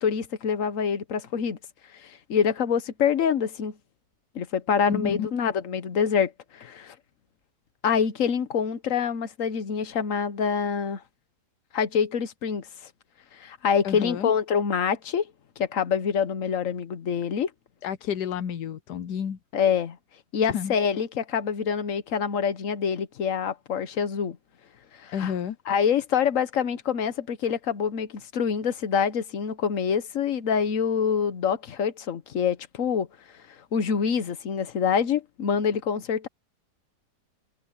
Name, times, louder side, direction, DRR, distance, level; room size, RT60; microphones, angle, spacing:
voice 1, 0.0-1.6 2.0-3.7 4.3-6.9 7.8-11.0 11.7-12.6 13.4-15.2 15.6-17.5 19.5-20.0 20.3-24.4 25.0-25.3 25.7-33.1 33.7-36.3, left 7 dB, 55° left, 1.3 m, -26 dB
voice 2, 4.9-5.3 13.8-14.3 17.8-19.4 20.5-20.7 25.1-25.6, left 8 dB, 85° left, 1.4 m, -30 dB
omnidirectional pair, 1.7 m